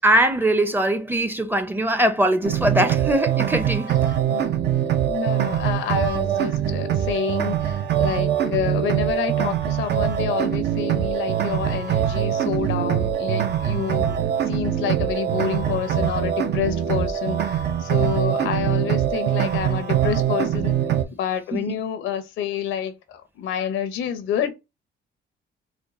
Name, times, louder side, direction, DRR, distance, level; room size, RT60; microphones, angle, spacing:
voice 1, 0.0-4.0 12.6-12.7 13.7-14.0 18.0-18.1 20.9-21.0 21.5-21.6, right 1 dB, 10° right, 0.6 m, -22 dB
sound 1, 2.4-21.0, right 10 dB, 60° right, 0.6 m, -23 dB
voice 2, 4.0-4.5 4.8-14.2 14.5-20.8 21.1-24.5, left 8 dB, 85° left, 0.7 m, -28 dB
4.3 x 2.3 x 2.5 m
cardioid pair, 90°, 20 cm